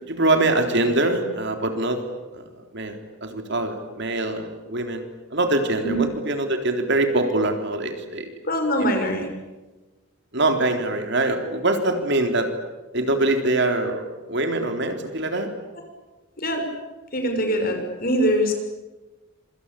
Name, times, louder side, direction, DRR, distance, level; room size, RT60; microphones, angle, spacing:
voice 1, 0.0-2.0 2.3-2.4 2.7-5.0 5.3-8.3 8.8-8.9 10.3-12.5 12.9-15.5, right 2 dB, 55° right, 5 dB, 3.8 m, -23 dB
voice 2, 8.4-9.3 16.4-16.7 17.1-18.5, equal, 45° left, 5 dB, 6.4 m, -23 dB
27.0 x 25.5 x 8.6 m, 1.1 s
head